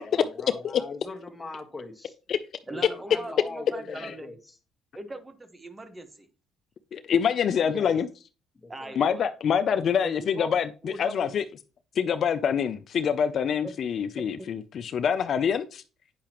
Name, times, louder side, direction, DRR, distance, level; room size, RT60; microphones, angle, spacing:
voice 1, 0.0-2.2 2.7-4.4 7.6-7.9 8.5-9.0, left 3 dB, 15° left, 1.4 m, -41 dB
voice 2, 2.7-4.3 4.9-6.3 8.7-9.3 10.0-10.6 10.8-11.3 13.3-13.7 14.4-14.5, right 2 dB, 25° right, 1.1 m, -40 dB
voice 3, 6.9-8.1 9.0-11.4 12.0-15.8, left 7 dB, 55° left, 0.4 m, -26 dB
8.6 x 5.7 x 3.0 m
cardioid pair, 80°, 0 cm